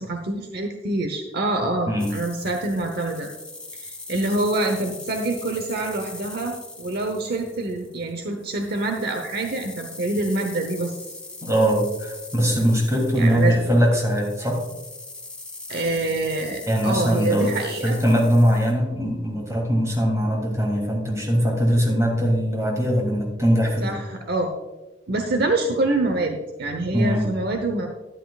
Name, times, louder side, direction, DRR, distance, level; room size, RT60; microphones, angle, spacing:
voice 1, 0.0-3.3 3.8-10.9 13.1-13.5 15.7-18.0 23.8-24.5 25.1-27.9, right 2 dB, 60° right, 4 dB, 0.9 m, -26 dB
sound 1, 2.0-18.7, left 2 dB, 5° left, 1.9 m, -41 dB
voice 2, 11.4-14.6 16.7-17.6 17.8-23.9 26.9-27.3, equal, 15° right, -2 dB, 2.9 m, -21 dB
12.0 x 11.5 x 2.4 m, 1.1 s
head